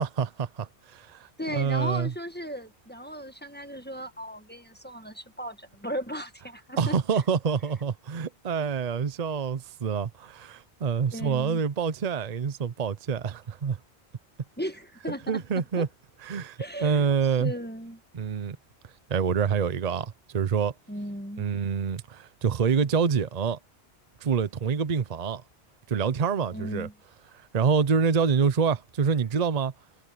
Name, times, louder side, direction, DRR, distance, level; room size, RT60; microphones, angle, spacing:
voice 1, 0.0-2.1 6.8-13.8 15.3-15.9 16.2-17.5 18.1-18.6 19.1-20.7 21.4-23.6 24.2-25.4 25.9-26.9 27.3-29.7, right 6 dB, 40° right, 0.8 m, -26 dB
voice 2, 1.4-6.9 11.1-11.6 14.6-15.9 16.6-17.0 17.4-18.0 20.9-21.4 26.5-26.9, equal, 10° left, 1.5 m, -36 dB
omnidirectional pair, 1.1 m